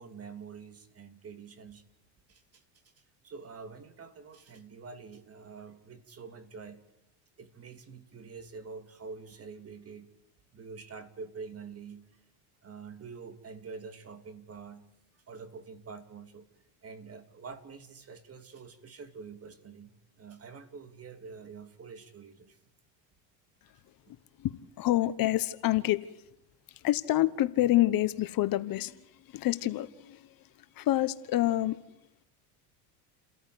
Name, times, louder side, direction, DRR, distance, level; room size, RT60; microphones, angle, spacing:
voice 1, 0.0-1.8 2.3-2.6 3.2-6.8 7.4-10.1 10.5-12.0 12.6-14.8 15.1-16.5 16.8-19.9 20.2-22.6, right 5 dB, 30° right, 9 dB, 3.0 m, -46 dB
voice 2, 24.8-26.0 26.7-29.0 29.3-30.3 30.8-31.8, left 15 dB, 50° left, 14 dB, 1.2 m, -27 dB
30.0 x 14.0 x 8.1 m, 0.86 s
supercardioid pair, 100°, 45 cm